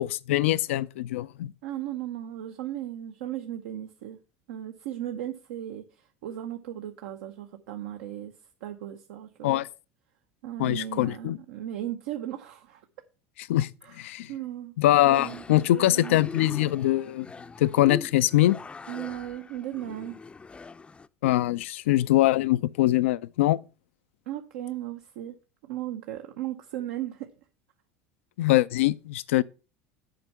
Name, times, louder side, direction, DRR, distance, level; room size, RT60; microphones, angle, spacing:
voice 1, 0.0-1.5 9.4-9.7 10.6-11.4 13.5-13.7 14.0-14.3 14.8-17.3 17.6-18.6 21.2-23.6 28.4-29.4, left 15 dB, 90° left, 0.4 m, -23 dB
voice 2, 1.6-4.2 4.5-8.3 8.6-9.6 10.4-12.8 13.8-14.7 15.0-15.4 15.7-16.2 18.9-20.2 24.3-25.3 25.6-27.3, right 12 dB, 80° right, 0.8 m, -36 dB
sound 1, 15.1-21.1, left 4 dB, 15° left, 0.4 m, -41 dB
7.6 x 4.5 x 6.9 m
supercardioid pair, 100°, 7 cm